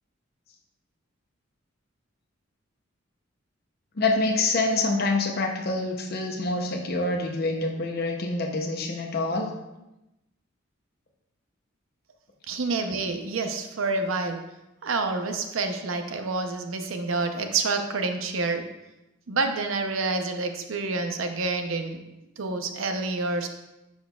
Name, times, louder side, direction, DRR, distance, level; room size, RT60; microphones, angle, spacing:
voice 1, 4.0-9.5, left 2 dB, 50° left, 1 dB, 0.7 m, -26 dB
voice 2, 12.5-14.5 14.8-18.7 19.3-22.0 22.4-23.5, right 3 dB, 85° right, 6 dB, 0.7 m, -28 dB
10.5 x 4.5 x 2.3 m, 0.97 s
head